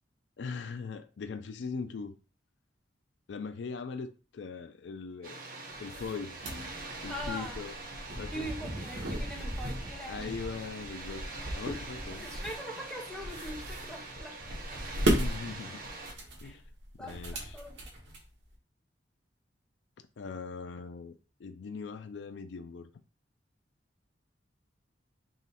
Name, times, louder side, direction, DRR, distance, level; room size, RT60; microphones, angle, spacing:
voice 1, 0.4-2.1 3.3-5.4 5.8-6.4 7.0-7.8 8.2-8.5 10.1-11.2 11.6-12.2 15.2-15.8 16.4-16.6 17.0-17.6 20.2-22.9, left 5 dB, 75° left, 0.4 m, -40 dB
Water, 5.2-16.1, right 3 dB, 55° right, 1.0 m, -44 dB
sound 1, 5.7-18.5, right 1 dB, 80° right, 1.4 m, -36 dB
voice 2, 7.1-7.6 8.3-10.3 12.2-14.6 16.4-16.6 17.0-17.8, equal, 5° left, 1.1 m, -42 dB
3.8 x 3.0 x 4.1 m
head